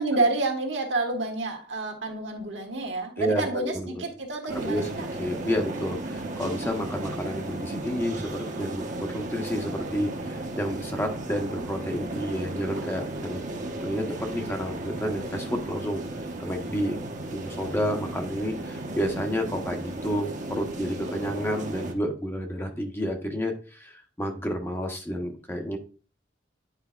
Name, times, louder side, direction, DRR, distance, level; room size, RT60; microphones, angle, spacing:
voice 1, 0.0-5.1, right 2 dB, 70° right, 2 dB, 1.5 m, -29 dB
voice 2, 3.2-4.0 4.6-4.8 5.2-13.4 13.8-14.1 14.3-16.0 16.4-17.0 17.3-25.8, equal, 15° left, 3 dB, 0.9 m, -30 dB
sound 1, 4.5-21.9, right 2 dB, 45° right, 1.0 m, -35 dB
9.9 x 4.7 x 2.4 m, 0.37 s
head